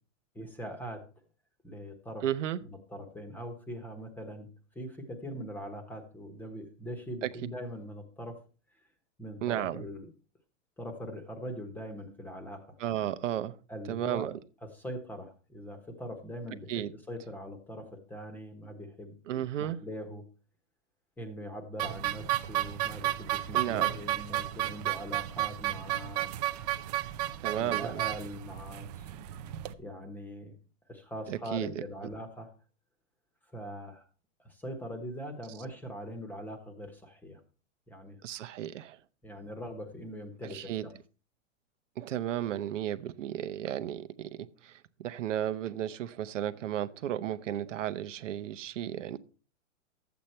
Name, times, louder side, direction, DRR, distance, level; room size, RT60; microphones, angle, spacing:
voice 1, 0.3-1.0 1.6-2.2 2.6-4.5 4.7-8.4 9.2-10.1 10.8-12.7 13.7-14.3 14.7-20.2 21.2-26.3 27.5-29.0 29.8-30.5 30.9-32.5 33.5-34.0 34.4-37.4 37.9-38.2 39.2-40.9, equal, 5° left, 7 dB, 1.1 m, -42 dB
voice 2, 2.2-2.6 7.2-7.3 9.4-9.8 12.8-13.5 13.9-14.4 16.7-16.9 19.3-19.8 23.5-23.9 27.4-28.0 31.3-31.7 38.2-39.0 40.5-40.8 42.0-49.2, right 11 dB, 75° right, 11 dB, 1.0 m, -34 dB
sound 1, 21.8-29.7, right 14 dB, 35° right, 0.6 m, -33 dB
12.0 x 8.2 x 4.4 m, 0.36 s
supercardioid pair, 165°, 38 cm